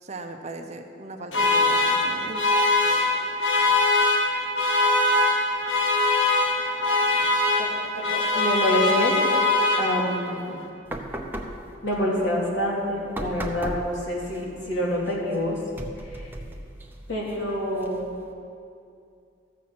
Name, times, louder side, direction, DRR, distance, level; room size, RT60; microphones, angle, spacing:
voice 1, 0.0-2.4, right 2 dB, 35° right, 5 dB, 0.7 m, -38 dB
sound 1, 1.3-10.3, left 2 dB, 85° left, 1.4 m, -22 dB
voice 2, 8.1-9.1 9.8-10.6 11.8-15.6 16.0-16.3 17.1-18.2, equal, 65° left, -5 dB, 3.0 m, -27 dB
sound 2, 10.9-18.3, right 1 dB, 10° right, 0.8 m, -38 dB
14.0 x 7.3 x 6.1 m, 2.5 s
head